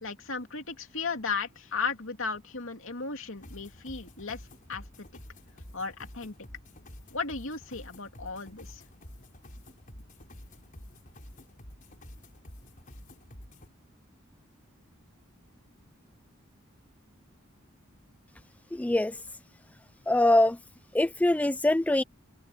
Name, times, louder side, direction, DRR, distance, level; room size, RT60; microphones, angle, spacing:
voice 1, 0.0-4.4 4.7-5.1 5.7-6.3 7.1-8.8, left 4 dB, 65° left, 2.9 m, -35 dB
sound 1, 3.4-13.7, left 1 dB, 40° left, 5.2 m, -49 dB
voice 2, 18.7-19.2 20.1-20.6 20.9-22.0, left 1 dB, 5° left, 0.3 m, -23 dB
head